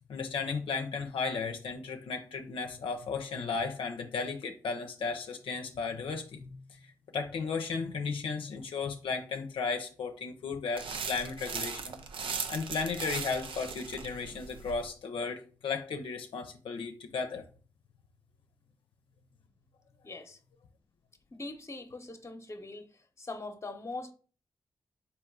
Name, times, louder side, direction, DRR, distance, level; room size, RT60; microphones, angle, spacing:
voice 1, 0.1-12.0 12.5-17.4, left 5 dB, 85° left, 0.5 m, -35 dB
sound 1, 10.8-14.9, right 5 dB, 80° right, 0.5 m, -38 dB
voice 2, 20.0-20.4 21.3-22.8 23.2-24.1, left 2 dB, 35° left, 0.8 m, -41 dB
3.7 x 2.9 x 4.6 m
cardioid pair, 45°, 9 cm